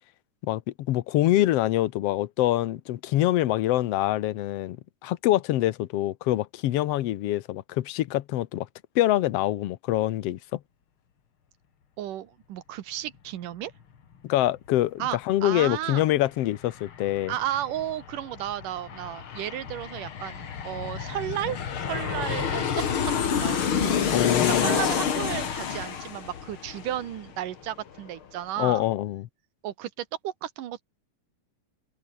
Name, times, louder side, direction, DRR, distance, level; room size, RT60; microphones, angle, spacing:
voice 1, 0.4-8.7 8.9-10.6 14.2-17.3 24.1-24.7 28.6-29.3, left 14 dB, 70° left, 1.6 m, -25 dB
voice 2, 12.0-13.7 15.0-16.0 17.3-22.7 23.2-24.0 24.5-28.8 29.6-30.8, right 12 dB, 90° right, 3.0 m, -33 dB
Aircraft, 16.0-16.1 16.4-27.7 28.0-28.1, left 7 dB, 45° left, 2.5 m, -29 dB
omnidirectional pair, 3.6 m